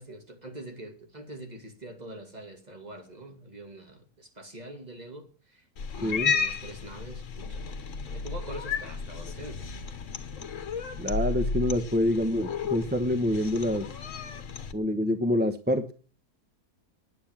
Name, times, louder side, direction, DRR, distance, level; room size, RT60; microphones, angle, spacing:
voice 1, 0.0-5.7 5.9-9.7, right 1 dB, 25° right, 2.5 m, -44 dB
Cat, 5.8-14.7, left 5 dB, 55° left, 1.4 m, -33 dB
voice 2, 6.0-6.3 11.0-13.9 14.7-15.9, left 1 dB, 10° right, 0.6 m, -26 dB
9.5 x 9.3 x 7.2 m
omnidirectional pair, 1.6 m